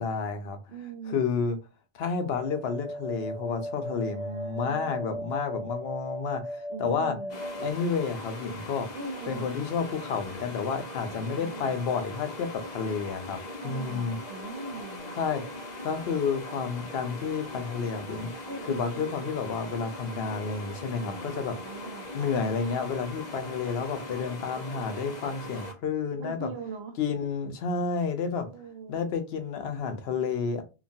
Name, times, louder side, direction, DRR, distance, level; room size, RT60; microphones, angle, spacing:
voice 1, 0.0-0.6 1.1-1.6 1.9-7.2 7.6-8.9 9.3-13.4 13.6-14.2 15.2-15.4 15.8-21.5 22.1-26.5 27.0-28.5 28.9-30.6, left 5 dB, 80° left, 0.8 m, -30 dB
voice 2, 0.7-1.2 4.1-5.3 6.7-7.4 8.9-9.5 11.1-11.8 13.6-15.2 18.5-19.1 21.0-22.1 26.2-26.9 28.5-29.1, right 4 dB, 80° right, 0.8 m, -41 dB
sound 1, 2.3-7.7, equal, 50° right, 0.6 m, -37 dB
sound 2, 7.3-25.7, left 1 dB, 50° left, 0.7 m, -40 dB
3.0 x 2.2 x 2.6 m
omnidirectional pair, 1.0 m